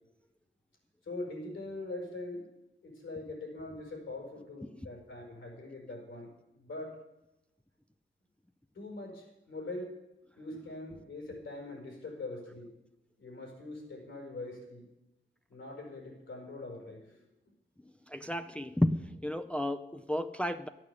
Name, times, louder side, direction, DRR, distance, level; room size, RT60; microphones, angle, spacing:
voice 1, 1.0-2.5 2.8-7.0 8.7-10.0 10.4-12.7 13.2-14.9 15.5-17.2, left 2 dB, 75° left, 1 dB, 5.2 m, -42 dB
voice 2, 18.1-20.7, left 1 dB, 5° left, 7 dB, 0.5 m, -32 dB
12.5 x 8.9 x 8.2 m, 0.96 s
cardioid pair, 95°, 20 cm